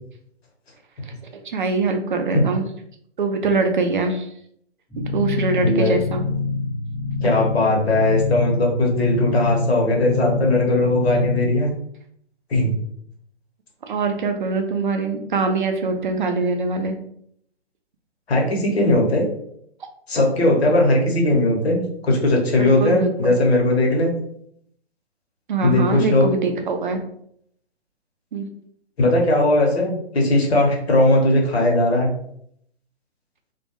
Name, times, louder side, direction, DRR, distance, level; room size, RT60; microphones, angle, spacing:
voice 1, 1.3-2.6 3.2-4.3 5.0-6.2 13.9-17.0 22.6-23.3 25.5-27.0 28.3-28.5, right 3 dB, 50° right, 5 dB, 0.4 m, -23 dB
sound 1, 4.9-11.4, left 3 dB, ahead, 0.6 m, -26 dB
voice 2, 5.6-6.0 7.2-11.7 12.5-12.7 18.3-19.2 20.1-24.1 25.6-26.3 29.0-32.1, left 1 dB, 70° left, 0 dB, 1.0 m, -18 dB
2.3 x 2.2 x 2.9 m, 0.69 s
figure-of-eight pair, 125°, 33 cm